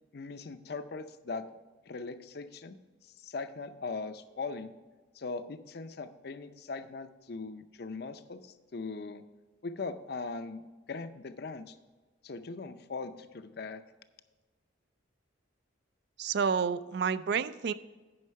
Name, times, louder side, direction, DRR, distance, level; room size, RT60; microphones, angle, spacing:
voice 1, 0.1-1.4 1.9-2.8 3.0-4.7 5.1-9.2 9.6-10.6 10.9-11.8 12.2-13.8, left 4 dB, 55° left, 10 dB, 0.5 m, -40 dB
voice 2, 16.2-17.7, right 6 dB, 60° right, 15 dB, 0.3 m, -29 dB
9.6 x 5.5 x 5.6 m, 1.3 s
head